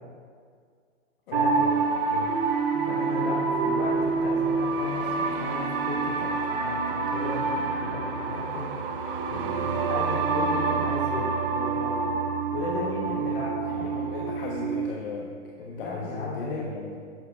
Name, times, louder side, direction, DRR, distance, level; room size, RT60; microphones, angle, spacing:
voice 1, 1.3-1.8 2.1-2.4 13.0-13.4 13.7-17.0, left 4 dB, 45° left, -1 dB, 1.1 m, -37 dB
sound 1, 1.3-14.9, right 4 dB, 45° right, 0.9 m, -27 dB
voice 2, 2.8-8.7 9.3-12.0 12.5-13.9 15.8-16.7, left 2 dB, 25° left, -4 dB, 2.6 m, -35 dB
10.0 x 8.0 x 4.8 m, 2.1 s
hypercardioid pair, 150°, 38 cm